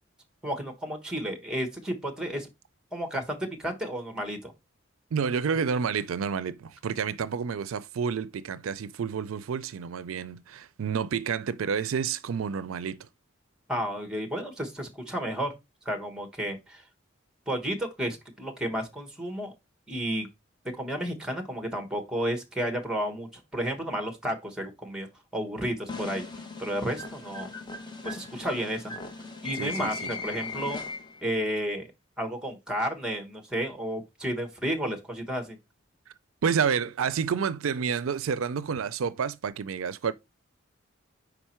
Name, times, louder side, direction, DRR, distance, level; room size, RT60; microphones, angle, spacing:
voice 1, 0.4-2.5 2.9-4.5 13.7-15.6 15.8-16.8 17.5-19.5 19.9-20.3 20.8-25.1 25.3-26.2 26.6-27.5 28.0-28.9 29.4-30.8 31.2-31.9 32.2-35.6, equal, 5° right, 1.2 m, -32 dB
voice 2, 5.1-13.1 29.6-30.1 36.4-40.1, right 6 dB, 80° right, 0.4 m, -29 dB
sound 1, 25.9-31.3, left 3 dB, 20° left, 0.9 m, -38 dB
5.1 x 4.5 x 4.3 m
head